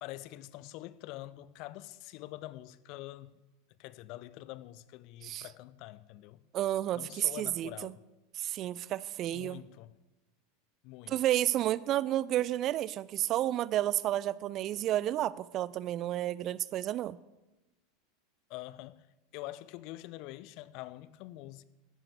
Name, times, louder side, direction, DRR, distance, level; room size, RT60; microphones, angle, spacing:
voice 1, 0.0-3.3 3.7-6.4 6.9-8.0 9.3-9.9 10.8-11.2 18.5-19.1 19.3-21.6, left 16 dB, 45° left, 0.5 m, -45 dB
voice 2, 6.5-7.9 8.4-9.6 11.1-17.2, right 13 dB, 40° right, 0.4 m, -31 dB
14.0 x 10.5 x 3.5 m
figure-of-eight pair, 85°, 0 cm